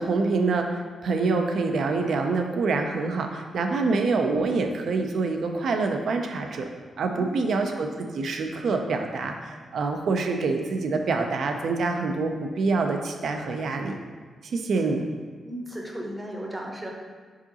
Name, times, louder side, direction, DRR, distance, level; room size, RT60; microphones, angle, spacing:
voice 1, 0.0-6.7 7.0-14.0 14.5-15.0, right 3 dB, 70° right, 4 dB, 0.4 m, -26 dB
voice 2, 7.1-7.6 14.8-14.9 15.5-16.9, right 1 dB, 15° right, -1 dB, 0.7 m, -35 dB
4.8 x 3.7 x 2.8 m, 1.5 s
wide cardioid pair, 120°, 0 cm